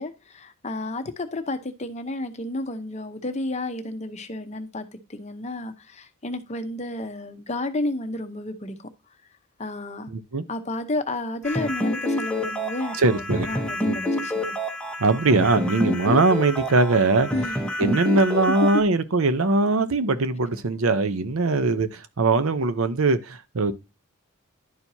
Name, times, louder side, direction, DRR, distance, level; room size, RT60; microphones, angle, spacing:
voice 1, 0.0-8.9 9.6-10.1 10.5-14.6 17.3-17.6, left 2 dB, 30° left, 0.7 m, -31 dB
voice 2, 10.1-10.4 13.0-13.5 13.8-14.0 15.0-17.3 17.8-23.7, right 3 dB, 75° right, 0.7 m, -21 dB
sound 1, 11.4-18.8, equal, 5° left, 0.9 m, -28 dB
11.0 x 4.5 x 2.7 m
head